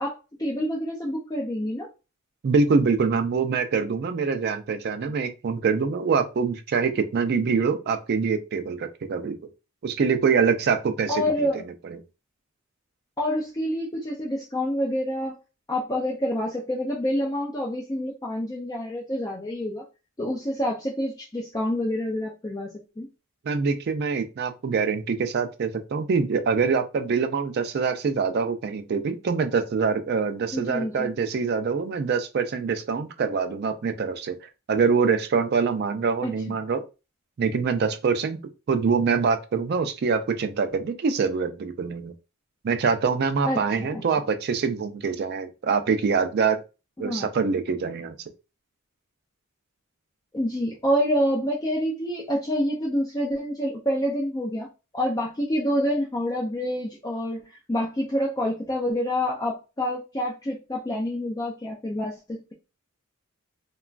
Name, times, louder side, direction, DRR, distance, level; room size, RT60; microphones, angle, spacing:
voice 1, 0.0-1.9 11.1-11.6 13.2-15.3 15.7-19.8 20.2-23.1 30.5-31.1 36.2-36.6 43.5-44.0 47.0-47.3 50.3-54.7 54.9-62.5, equal, 15° left, 0.4 m, -27 dB
voice 2, 2.4-9.4 9.8-11.5 11.9-12.0 23.4-34.4 34.7-36.8 37.4-38.4 38.7-42.1 42.6-46.6 47.0-48.2, right 5 dB, 50° right, 0.3 m, -24 dB
2.9 x 2.3 x 2.4 m
head